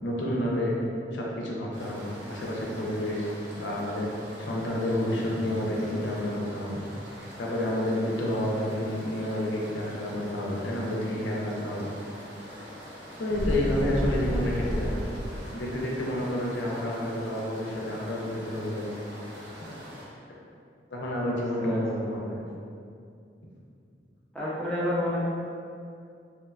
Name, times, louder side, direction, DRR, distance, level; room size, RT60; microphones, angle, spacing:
voice 1, 0.0-0.8 1.1-3.3 3.6-4.1 4.4-6.8 7.4-11.9 13.2-15.1 15.5-18.9 19.6-19.7 20.9-22.4, left 1 dB, 80° left, -3 dB, 0.5 m, -30 dB
sound 1, 1.7-20.1, equal, 75° right, 0.5 m, -44 dB
sound 2, 13.2-15.4, equal, 45° right, 1.0 m, -30 dB
voice 2, 21.6-22.4 24.3-25.2, equal, 5° left, -9 dB, 0.5 m, -31 dB
3.0 x 2.1 x 2.3 m, 2.4 s
head